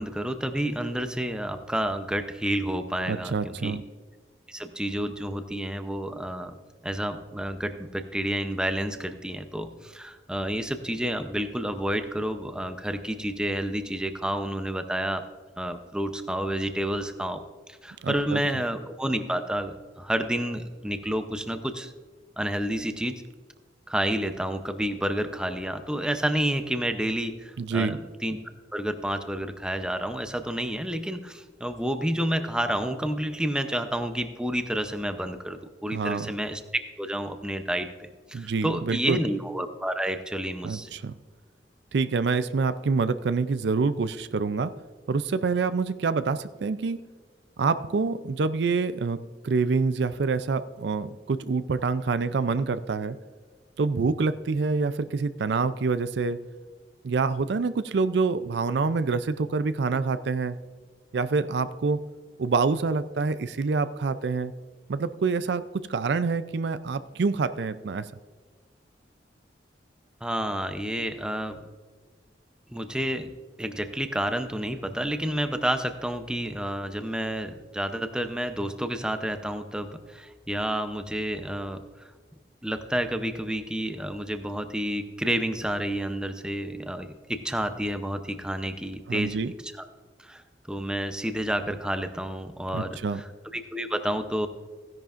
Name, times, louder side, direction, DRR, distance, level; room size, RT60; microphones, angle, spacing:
voice 1, 0.0-3.8 4.5-6.6 6.8-15.2 15.6-17.4 17.8-21.9 22.4-23.1 23.9-28.4 28.7-36.6 37.0-41.0 70.2-71.6 72.7-73.3 73.6-81.8 82.6-89.9 90.2-90.4 90.7-94.5, right 1 dB, 5° right, 8 dB, 0.6 m, -30 dB
voice 2, 3.1-3.8 18.0-18.4 27.6-28.0 35.9-36.3 38.3-39.2 40.6-41.1 41.9-44.7 45.1-47.0 47.6-49.2 49.4-53.2 53.8-56.4 57.0-60.6 61.1-62.0 62.4-64.5 64.9-65.6 65.9-68.1 89.1-89.5 92.7-93.2, right 4 dB, 70° right, 13 dB, 0.4 m, -26 dB
15.5 x 10.5 x 2.5 m, 1.4 s
head